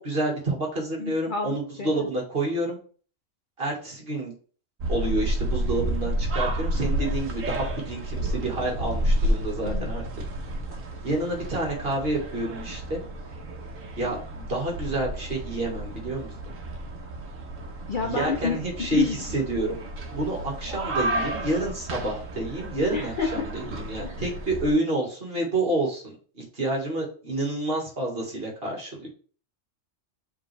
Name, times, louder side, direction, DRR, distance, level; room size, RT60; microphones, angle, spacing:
voice 1, 0.0-2.8 3.6-4.3 4.9-10.0 11.0-13.0 14.0-16.3 18.0-19.8 20.1-29.1, right 2 dB, 45° right, -1 dB, 2.0 m, -29 dB
voice 2, 1.0-2.1 9.6-9.9 17.9-19.2 22.9-23.5 24.0-24.2, left 5 dB, 50° left, 3 dB, 0.7 m, -29 dB
sound 1, 4.8-24.7, right 1 dB, 80° right, 1.5 m, -31 dB
7.3 x 3.8 x 3.3 m, 0.41 s
omnidirectional pair, 1.4 m